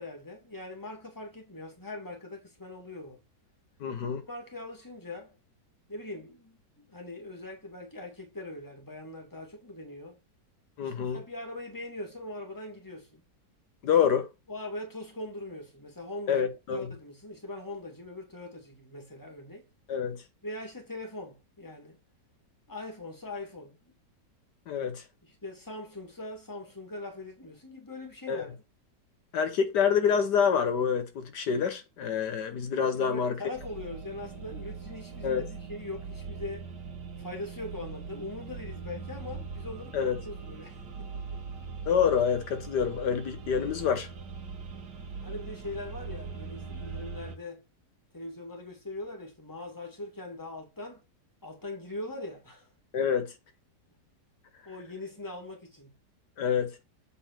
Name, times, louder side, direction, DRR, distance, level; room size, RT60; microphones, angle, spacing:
voice 1, 0.0-3.2 4.0-5.4 5.9-10.2 10.8-13.2 14.5-16.4 16.7-19.7 20.4-22.0 22.7-23.8 25.2-28.6 33.0-36.7 37.2-40.0 40.3-41.1 45.2-47.6 48.1-51.0 51.4-52.7 54.7-55.9, left 2 dB, 10° left, 2.2 m, -41 dB
voice 2, 3.8-4.2 10.8-11.2 13.8-14.3 16.3-16.9 19.9-20.2 24.7-25.0 28.3-28.4 29.3-33.3 35.2-35.4 39.9-40.2 41.9-44.1 52.9-53.3 56.4-56.8, left 7 dB, 75° left, 1.6 m, -27 dB
sound 1, 33.5-47.4, right 5 dB, 80° right, 1.8 m, -41 dB
7.7 x 4.1 x 5.9 m
omnidirectional pair, 1.8 m